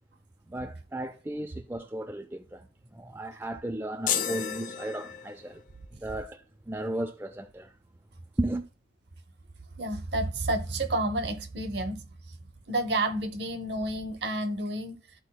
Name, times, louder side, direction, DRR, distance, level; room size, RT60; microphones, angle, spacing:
voice 1, 0.5-5.6 5.9-7.8 8.4-8.6, right 1 dB, 10° right, 0.3 m, -35 dB
sound 1, 4.1-5.6, left 8 dB, 45° left, 0.5 m, -32 dB
voice 2, 9.8-12.0 12.7-14.9, right 1 dB, 60° right, 0.8 m, -30 dB
13.0 x 4.5 x 2.2 m
head